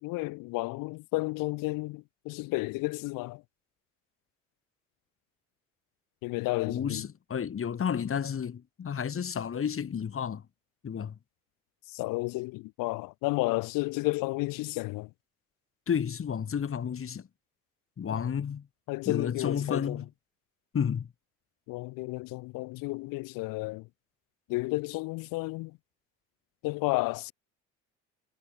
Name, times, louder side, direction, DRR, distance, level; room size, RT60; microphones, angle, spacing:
voice 1, 0.0-3.4 6.2-7.1 11.9-15.1 18.1-18.2 18.9-20.0 21.7-23.9 24.5-25.8 26.6-27.3, left 23 dB, 80° left, 4.3 m, -32 dB
voice 2, 6.7-10.4 10.8-11.2 15.9-17.3 18.0-18.7 19.1-20.1 20.7-21.1, left 7 dB, 40° left, 4.4 m, -31 dB
supercardioid pair, 80°, 33 cm